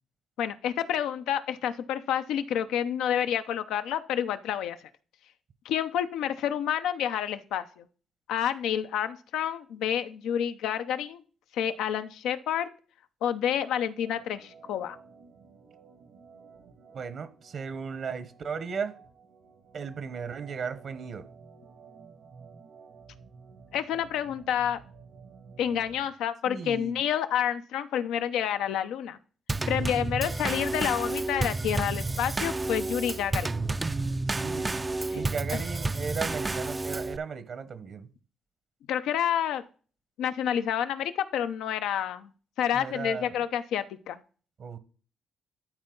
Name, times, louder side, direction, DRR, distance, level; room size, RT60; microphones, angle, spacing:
voice 1, 0.4-4.8 5.6-7.8 8.3-11.2 11.5-12.7 13.2-15.0 23.7-24.8 25.6-29.2 29.7-33.7 35.1-35.2 35.5-35.6 38.9-39.6 40.2-42.3 42.6-44.2, left 9 dB, 85° left, 10 dB, 0.7 m, -29 dB
Organ, 14.0-26.1, right 5 dB, 80° right, 1.8 m, -53 dB
voice 2, 16.9-18.9 19.7-21.3 26.5-26.9 34.3-34.9 35.1-38.1 42.7-43.3 44.6-44.8, right 6 dB, 55° right, 13 dB, 1.0 m, -36 dB
Drum kit / Snare drum / Bass drum, 29.5-37.2, right 3 dB, 20° right, 0.4 m, -30 dB
12.5 x 4.5 x 3.9 m, 0.39 s
cardioid pair, 90°, 0 cm